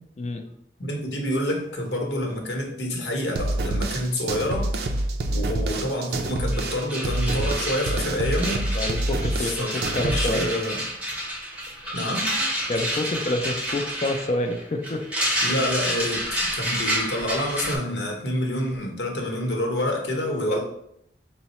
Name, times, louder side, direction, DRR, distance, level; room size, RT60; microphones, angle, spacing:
voice 1, 0.8-4.7 5.3-8.6 9.4-10.8 11.9-12.3 15.4-20.6, left 1 dB, 80° left, 1 dB, 1.0 m, -27 dB
sound 1, 3.3-10.7, right 2 dB, 60° right, 0.4 m, -27 dB
sound 2, 6.2-6.3 6.5-17.8, equal, 10° right, 0.7 m, -29 dB
voice 2, 8.7-10.5 11.8-12.0 12.7-15.0 20.5-20.6, left 2 dB, 40° left, 5 dB, 0.4 m, -28 dB
4.7 x 2.0 x 4.1 m, 0.75 s
head